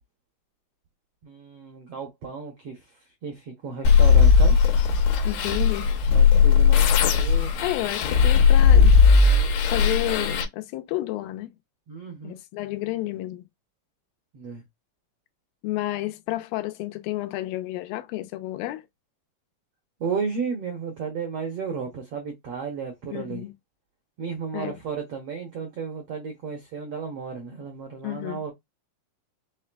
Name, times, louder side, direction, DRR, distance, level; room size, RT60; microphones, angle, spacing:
voice 1, 1.2-2.8 3.2-4.6 6.1-7.5 11.9-12.4 14.3-14.6 20.0-23.4 24.2-28.5, right 5 dB, 75° right, 1.4 m, -33 dB
sound 1, 3.8-10.4, left 5 dB, 70° left, 1.8 m, -17 dB
voice 2, 5.2-5.9 7.6-9.0 9.6-11.5 12.2-13.4 15.6-18.8 23.1-23.5 24.5-24.8 28.0-28.4, left 16 dB, 90° left, 2.4 m, -31 dB
5.6 x 3.3 x 2.2 m
omnidirectional pair, 4.2 m